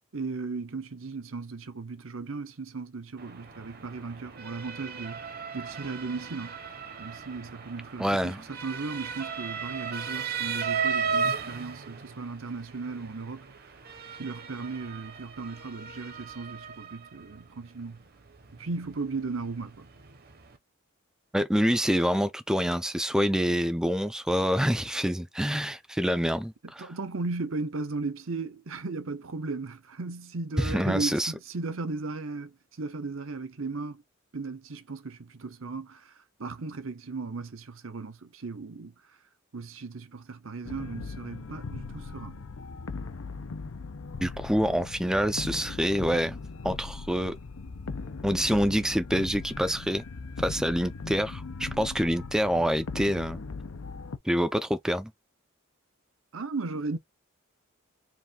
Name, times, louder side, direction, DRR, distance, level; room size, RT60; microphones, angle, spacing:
voice 1, 0.1-6.6 7.0-13.5 14.2-18.0 18.6-19.9 26.8-34.0 34.3-36.1 36.4-38.9 39.5-42.4 56.3-57.0, right 3 dB, 70° right, 0.9 m, -36 dB
Motor vehicle (road) / Siren, 3.2-20.6, right 6 dB, 45° right, 0.9 m, -36 dB
voice 2, 8.0-8.4 21.3-26.9 30.6-31.3 44.2-46.4 46.6-47.3 48.2-50.0 50.4-53.4 54.2-55.1, equal, 5° right, 0.4 m, -26 dB
sound 1, 40.6-54.2, left 4 dB, 85° left, 0.7 m, -39 dB
4.7 x 2.6 x 3.7 m
head